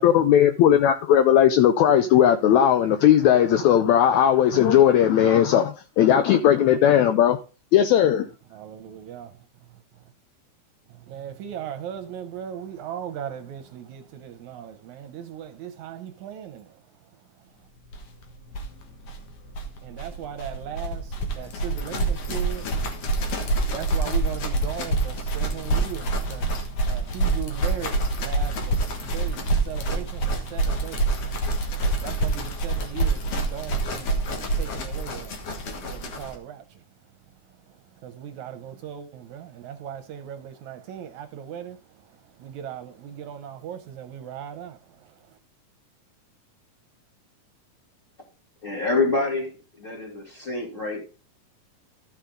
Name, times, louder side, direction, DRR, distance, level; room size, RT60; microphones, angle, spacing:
voice 1, 0.0-7.4 7.7-8.2, left 10 dB, 80° left, 1.7 m, -18 dB
voice 2, 8.5-10.1 10.9-17.7 19.8-36.8 37.3-45.4, right 9 dB, 75° right, 1.9 m, -38 dB
sound 1, 17.9-18.0 18.2-18.3 18.5-36.4, right 2 dB, 55° left, 2.1 m, -26 dB
voice 3, 48.6-49.5 49.8-51.0, left 3 dB, 15° left, 2.7 m, -26 dB
13.5 x 5.8 x 3.8 m
omnidirectional pair, 3.8 m